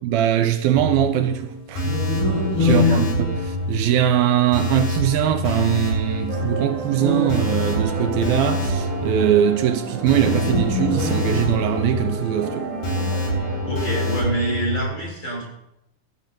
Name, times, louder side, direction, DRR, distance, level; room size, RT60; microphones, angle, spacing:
voice 1, 0.0-1.9 2.6-12.7, right 10 dB, 80° right, 2.7 m, -21 dB
sound 1, 0.8-14.8, equal, 70° left, 9.8 m, -26 dB
sound 2, 1.8-4.1 6.9-8.2 10.0-11.9, left 3 dB, 85° left, 8.3 m, -25 dB
voice 2, 2.7-3.1 13.6-15.5, right 1 dB, 30° left, 7.3 m, -27 dB
sound 3, 6.3-14.3, right 4 dB, 55° right, 5.4 m, -32 dB
19.5 x 13.5 x 3.9 m
omnidirectional pair, 4.3 m